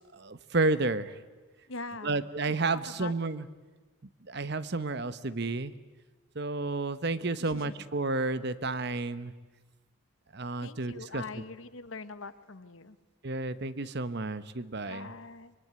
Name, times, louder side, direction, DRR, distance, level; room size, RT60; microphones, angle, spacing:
voice 1, 0.1-1.1 2.0-3.5 4.3-5.7 6.3-9.3 10.3-11.2 13.2-15.1, right 3 dB, 50° right, 14 dB, 1.0 m, -31 dB
voice 2, 1.7-2.3 2.8-3.1 7.4-7.7 10.6-13.0 14.9-15.5, left 3 dB, 70° left, 13 dB, 1.3 m, -42 dB
24.5 x 22.5 x 9.5 m, 1.3 s
head